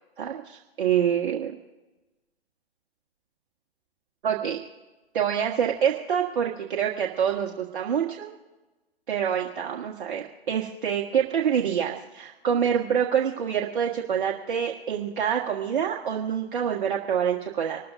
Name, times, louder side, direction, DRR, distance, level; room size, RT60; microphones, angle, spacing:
voice 1, 0.2-1.6 4.2-4.6 5.1-8.3 9.1-17.8, right 8 dB, 50° right, 0 dB, 1.6 m, -26 dB
26.0 x 13.5 x 2.6 m, 1.1 s
figure-of-eight pair, 125°, 32 cm